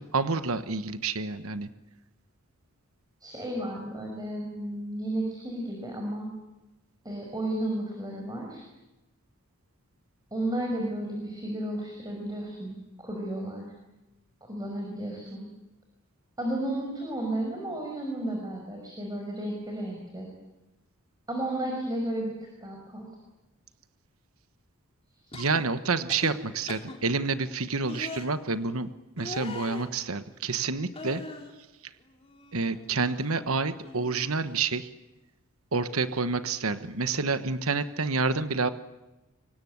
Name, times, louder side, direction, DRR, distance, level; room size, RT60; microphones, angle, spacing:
voice 1, 0.0-1.7 25.3-28.9 29.2-31.2 32.5-34.9 35.7-38.7, right 4 dB, 75° right, 11 dB, 1.2 m, -28 dB
voice 2, 3.2-6.3 7.0-8.6 10.3-13.7 14.4-15.5 16.4-20.3 21.3-22.3 22.6-23.1 25.3-25.4, right 1 dB, 20° right, 0 dB, 5.7 m, -33 dB
sound 1, 25.3-25.6 26.1-26.3 26.7-27.0 27.9-28.3 29.2-29.9 30.9-31.5 32.0-32.9 33.1-33.4 33.8-34.6 35.9-36.1, left 2 dB, 25° left, 3.1 m, -41 dB
25.0 x 23.5 x 9.6 m, 1.0 s
head